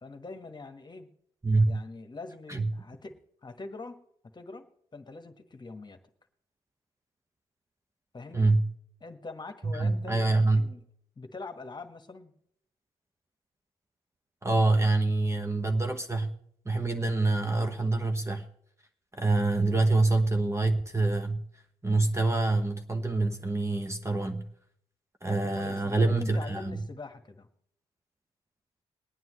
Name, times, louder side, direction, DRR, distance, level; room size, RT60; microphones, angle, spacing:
voice 1, 0.0-1.1 1.6-4.0 4.3-4.7 4.9-6.0 8.1-8.5 9.0-10.8 11.2-12.3 25.3-27.5, left 3 dB, 30° left, 1.4 m, -43 dB
voice 2, 1.4-1.8 2.5-2.7 8.3-8.7 9.6-10.6 14.4-16.3 16.6-18.4 19.1-21.4 21.8-24.5 25.2-26.8, right 2 dB, 20° right, 1.0 m, -26 dB
21.5 x 9.3 x 3.1 m
hypercardioid pair, 45°, 15 cm